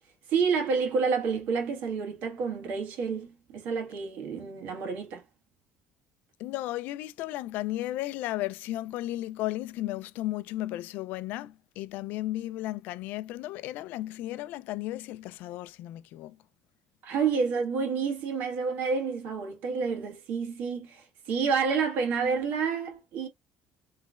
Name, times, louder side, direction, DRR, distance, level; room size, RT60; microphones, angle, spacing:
voice 1, 0.3-5.2 17.0-23.3, right 5 dB, 70° right, 1.5 m, -29 dB
voice 2, 6.4-16.4, left 15 dB, 75° left, 0.3 m, -34 dB
3.8 x 3.2 x 2.3 m
cardioid pair, 135°, 3 cm